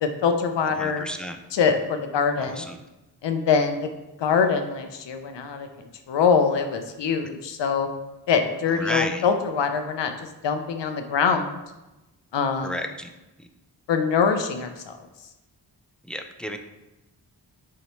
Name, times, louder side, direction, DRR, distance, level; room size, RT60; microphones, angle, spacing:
voice 1, 0.0-1.1 1.5-2.7 3.2-3.9 4.2-5.7 6.1-7.9 8.3-11.6 12.3-12.8 13.9-14.9, left 6 dB, 85° left, 6 dB, 0.6 m, -24 dB
voice 2, 0.8-1.4 2.4-2.8 8.7-9.2 12.6-13.1 13.4-13.5 16.1-16.6, equal, ahead, 5 dB, 0.3 m, -31 dB
6.3 x 2.8 x 3.0 m, 1.0 s
wide cardioid pair, 75°, 42 cm